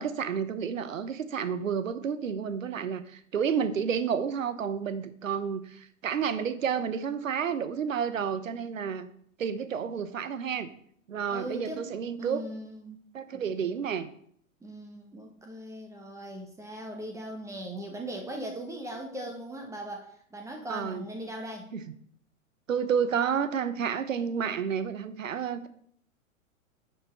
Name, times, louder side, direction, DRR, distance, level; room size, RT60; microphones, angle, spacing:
voice 1, 0.0-9.1 9.4-10.7 11.1-12.4 13.1-14.1 20.7-21.1 21.7-21.9 22.7-25.7, right 7 dB, 70° right, 13 dB, 0.9 m, -30 dB
voice 2, 11.3-11.9 12.2-13.0 13.3-13.7 14.6-21.7, right 1 dB, 5° right, 2 dB, 1.0 m, -39 dB
8.8 x 7.4 x 3.1 m, 0.64 s
figure-of-eight pair, 105°, 41 cm